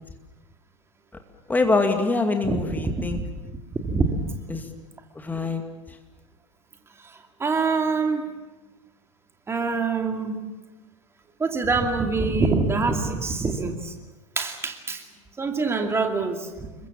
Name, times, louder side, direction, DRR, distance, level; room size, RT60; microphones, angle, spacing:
voice 1, 1.5-3.2 4.5-4.7 5.2-5.6, left 3 dB, 10° left, 5 dB, 2.4 m, -24 dB
voice 2, 2.4-3.2 3.8-4.4 7.4-8.2 9.5-10.4 11.4-13.9 14.4-15.0 15.4-16.5, right 4 dB, 15° right, 4 dB, 2.4 m, -25 dB
28.5 x 23.0 x 7.3 m, 1.2 s
figure-of-eight pair, 85°, 17 cm